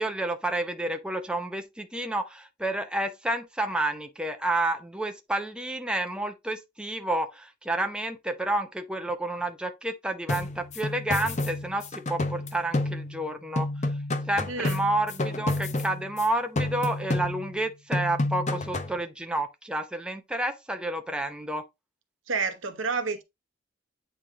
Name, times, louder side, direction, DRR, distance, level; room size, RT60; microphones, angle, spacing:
voice 1, 0.0-13.7 14.3-21.6, right 1 dB, 5° right, 0.7 m, -30 dB
sound 1, 10.3-13.3 13.6-16.3 16.6-17.6 17.9-19.0, left 2 dB, 40° left, 0.8 m, -30 dB
voice 2, 14.5-14.8 22.3-23.2, right 4 dB, 85° right, 1.0 m, -29 dB
8.4 x 3.2 x 3.7 m
head